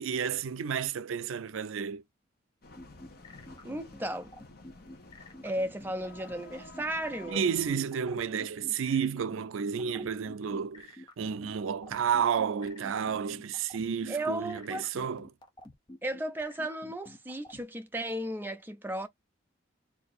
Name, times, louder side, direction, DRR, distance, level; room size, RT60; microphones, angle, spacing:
voice 1, 0.0-2.0 7.3-15.3, right 7 dB, 90° right, 0.4 m, -31 dB
sound 1, 2.6-7.7, left 2 dB, 50° left, 1.0 m, -50 dB
sound 2, 2.8-17.6, left 1 dB, 25° left, 0.8 m, -48 dB
voice 2, 3.6-4.3 5.4-7.4 14.1-14.8 16.0-19.1, right 1 dB, 10° right, 0.6 m, -35 dB
3.6 x 2.8 x 4.1 m
head